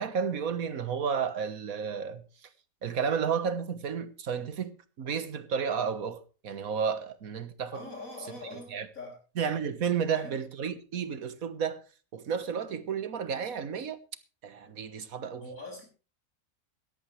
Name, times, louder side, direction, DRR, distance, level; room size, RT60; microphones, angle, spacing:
voice 1, 0.0-2.5 2.8-7.8 8.5-8.9 9.4-11.8 12.1-14.0 14.4-15.4, right 7 dB, 85° right, 1.7 m, -32 dB
voice 2, 7.7-9.2 10.1-10.4 15.4-15.8, left 2 dB, 75° left, 7.5 m, -43 dB
17.5 x 13.0 x 3.2 m
omnidirectional pair, 1.4 m